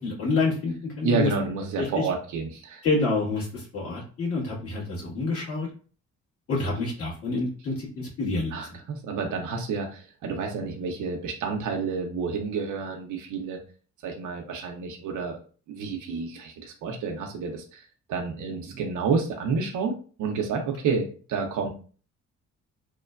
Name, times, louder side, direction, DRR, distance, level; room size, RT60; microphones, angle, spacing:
voice 1, 0.0-1.3 1.8-2.1 2.8-5.7 6.5-8.6, left 3 dB, 50° left, -6 dB, 1.5 m, -28 dB
voice 2, 1.0-2.8 8.5-13.6 14.0-15.4 15.7-17.8 18.1-21.7, right 5 dB, 80° right, 3 dB, 0.6 m, -29 dB
3.0 x 2.1 x 2.3 m, 0.40 s
cardioid pair, 90°, 30 cm